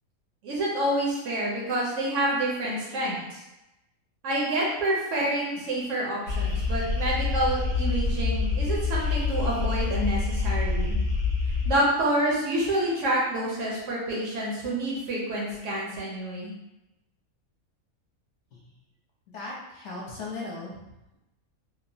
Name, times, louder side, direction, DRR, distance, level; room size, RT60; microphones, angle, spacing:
voice 1, 0.4-3.4 4.2-11.0 11.7-16.5, right 1 dB, 70° right, -4 dB, 0.9 m, -28 dB
sound 1, 6.3-11.7, left 4 dB, 85° right, 1.3 m, -26 dB
voice 2, 19.3-20.7, left 3 dB, 60° left, -5 dB, 0.9 m, -36 dB
2.9 x 2.0 x 2.6 m, 0.96 s
omnidirectional pair, 1.5 m